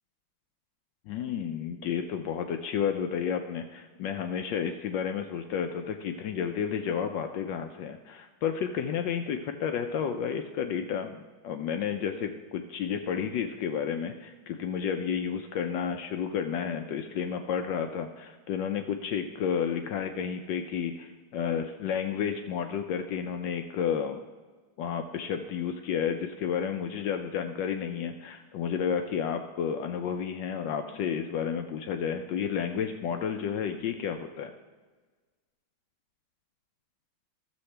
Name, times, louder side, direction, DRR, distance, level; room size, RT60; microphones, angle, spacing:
voice 1, 1.1-24.2 24.8-34.5, left 7 dB, 75° left, 6 dB, 1.0 m, -31 dB
13.0 x 7.1 x 3.3 m, 1.4 s
omnidirectional pair, 2.4 m